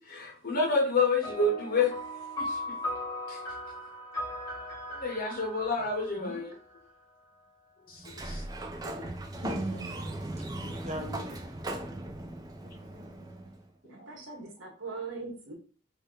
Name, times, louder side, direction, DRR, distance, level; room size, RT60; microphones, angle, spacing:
voice 1, 0.1-1.9 2.4-2.6 3.3-3.4 5.0-6.5 7.9-8.4, left 3 dB, 50° left, 0 dB, 1.1 m, -28 dB
sound 1, 1.2-7.0, left 1 dB, 20° left, 1.6 m, -38 dB
voice 2, 6.2-6.5 8.8-10.2 10.6-11.4 12.6-13.6 13.9-14.4, right 1 dB, 35° right, 0 dB, 0.9 m, -41 dB
Sliding door, 8.0-13.6, right 1 dB, 20° right, 0.4 m, -38 dB
voice 3, 13.8-15.5, right 4 dB, 70° right, 1 dB, 1.2 m, -41 dB
2.8 x 2.8 x 3.8 m, 0.38 s
head